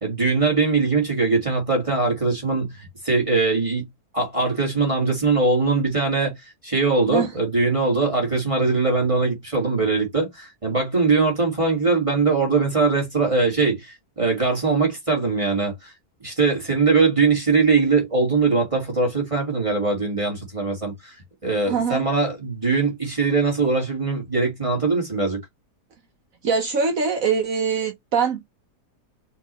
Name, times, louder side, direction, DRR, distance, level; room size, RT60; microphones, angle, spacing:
voice 1, 0.0-3.9 4.1-15.9 16.2-21.2 21.4-25.4, right 4 dB, 20° right, 2.0 m, -21 dB
voice 2, 21.7-22.0 26.4-28.4, right 5 dB, 60° right, 1.2 m, -23 dB
4.5 x 3.8 x 3.0 m
omnidirectional pair, 1.7 m